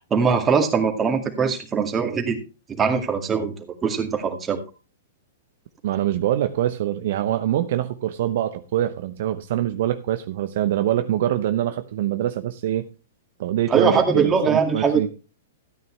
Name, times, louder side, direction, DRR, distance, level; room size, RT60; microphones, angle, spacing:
voice 1, 0.1-2.4 2.7-4.6 13.7-15.1, right 5 dB, 20° right, 2.1 m, -21 dB
voice 2, 5.8-12.9 13.4-15.1, right 12 dB, 60° right, 0.7 m, -24 dB
13.5 x 9.2 x 3.2 m
hypercardioid pair, 115°, 0 cm